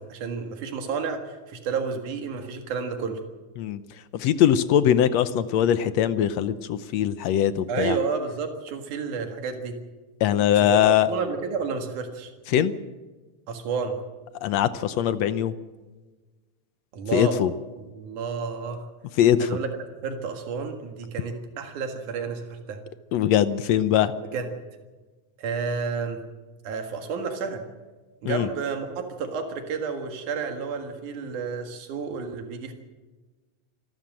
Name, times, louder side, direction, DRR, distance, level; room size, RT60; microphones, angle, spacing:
voice 1, 0.0-3.2 7.7-9.8 10.6-10.8 11.1-12.3 13.5-14.0 16.9-17.4 17.8-18.9 19.4-19.7 20.0-22.8 24.3-24.5 25.4-26.2 26.6-27.6 28.2-32.7, right 5 dB, 90° right, 5 dB, 3.3 m, -31 dB
voice 2, 4.1-8.0 10.2-11.1 12.5-12.7 14.4-15.5 17.1-17.5 19.2-19.5 23.1-24.1 28.3-28.5, left 10 dB, 70° left, 13 dB, 1.9 m, -21 dB
27.0 x 13.0 x 7.6 m, 1.3 s
omnidirectional pair, 3.4 m